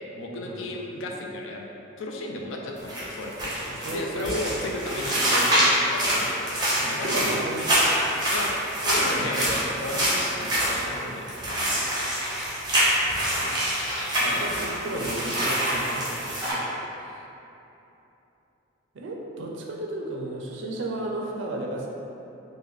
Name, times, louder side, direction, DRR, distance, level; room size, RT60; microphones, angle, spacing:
voice 1, 0.2-1.7 2.0-7.4 8.3-10.1 10.4-11.8 14.2-14.5, left 1 dB, 70° left, 0 dB, 0.4 m, -34 dB
sound 1, 2.8-16.5, right 1 dB, 20° right, 0.6 m, -25 dB
voice 2, 3.7-4.5 6.8-7.7 14.3-17.2 18.9-21.9, right 1 dB, 65° right, -1 dB, 0.4 m, -34 dB
3.1 x 2.1 x 3.4 m, 3.0 s
head